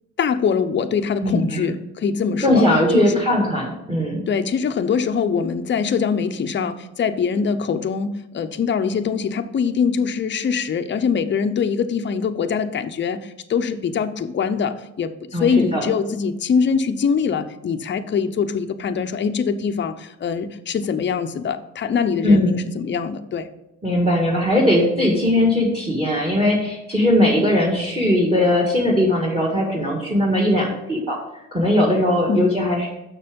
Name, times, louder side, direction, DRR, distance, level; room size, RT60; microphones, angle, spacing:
voice 1, 0.2-2.7 2.9-3.2 4.3-23.5 32.3-32.5, left 6 dB, 40° left, 8 dB, 0.7 m, -23 dB
voice 2, 1.2-1.7 2.4-4.2 15.3-15.9 22.2-22.6 23.8-31.2 31.5-32.9, left 1 dB, 15° right, -1 dB, 1.8 m, -19 dB
6.8 x 6.1 x 5.2 m, 0.91 s
cardioid pair, 90°, 30 cm